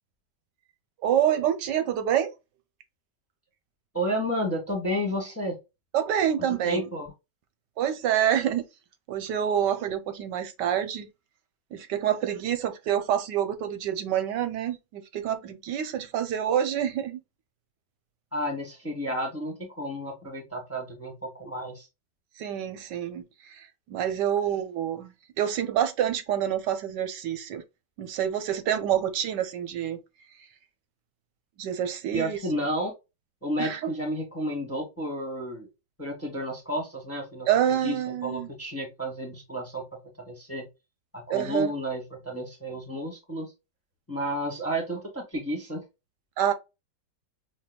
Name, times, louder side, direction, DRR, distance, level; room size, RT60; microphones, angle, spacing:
voice 1, 1.0-2.3 5.9-6.9 7.8-8.6 9.1-11.1 11.7-17.2 22.4-27.6 28.0-30.0 31.6-32.4 33.6-33.8 37.5-38.5 41.3-41.7 46.4-46.5, right 10 dB, 85° right, 1.4 m, -27 dB
voice 2, 3.9-5.6 6.5-7.1 18.3-21.9 32.1-32.9 33.4-35.7 36.0-37.5 37.8-38.0 38.2-39.8 40.2-40.7 41.1-43.5 44.1-45.8, equal, 10° left, 0.8 m, -31 dB
6.0 x 2.3 x 2.2 m
omnidirectional pair, 1.8 m